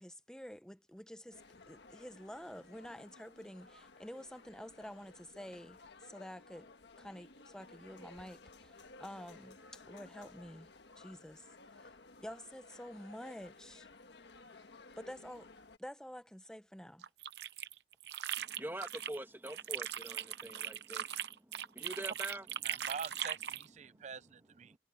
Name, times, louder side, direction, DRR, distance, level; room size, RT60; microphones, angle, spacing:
voice 1, 0.0-1.4 1.7-10.7 11.0-11.5 11.7-13.9 15.0-15.5 15.8-17.1, equal, 5° left, 0.9 m, -49 dB
sound 1, 1.3-15.8, left 3 dB, 75° left, 1.5 m, -57 dB
sound 2, 17.0-19.2 19.5-23.7, right 9 dB, 70° right, 0.8 m, -40 dB
voice 2, 18.4-22.9 23.8-24.1, right 1 dB, 10° right, 1.5 m, -46 dB
voice 3, 22.6-24.8, right 5 dB, 40° right, 0.5 m, -45 dB
head